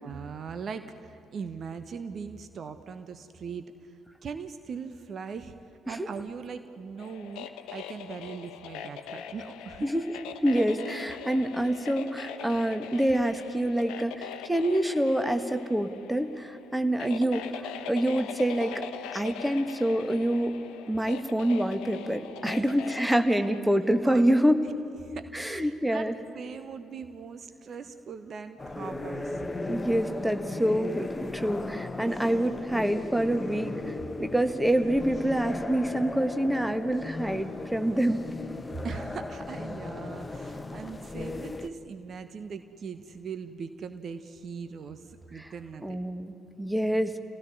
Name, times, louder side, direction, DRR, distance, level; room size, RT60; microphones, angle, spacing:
voice 1, 0.0-3.9 4.2-5.6 5.9-9.9 22.4-22.8 24.0-24.7 25.0-26.1 26.3-29.4 38.8-46.0, right 6 dB, 45° right, 10 dB, 1.2 m, -40 dB
sound 1, 7.0-23.6, left 8 dB, 60° left, 1.0 m, -42 dB
voice 2, 10.4-18.9 19.1-20.5 20.9-24.6 25.3-26.1 29.7-33.9 34.2-38.2 45.8-47.2, right 1 dB, 5° right, 8 dB, 1.7 m, -26 dB
sound 2, 28.6-41.7, left 2 dB, 20° left, 1.3 m, -36 dB
28.0 x 17.0 x 9.9 m, 2.8 s
figure-of-eight pair, 45°, 0 cm